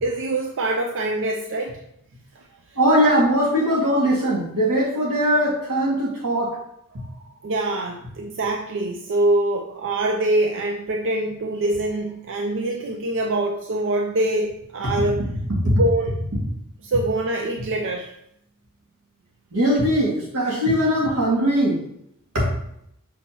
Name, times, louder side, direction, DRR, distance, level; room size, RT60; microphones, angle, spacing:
voice 1, 0.0-1.8 7.4-15.2 15.7-16.1 16.8-18.1, right 2 dB, 60° right, 2 dB, 0.5 m, -24 dB
voice 2, 2.8-6.6 15.7-15.8 19.5-21.8 22.3-22.5, equal, 85° right, -4 dB, 2.2 m, -20 dB
6.2 x 5.3 x 3.0 m, 0.76 s
head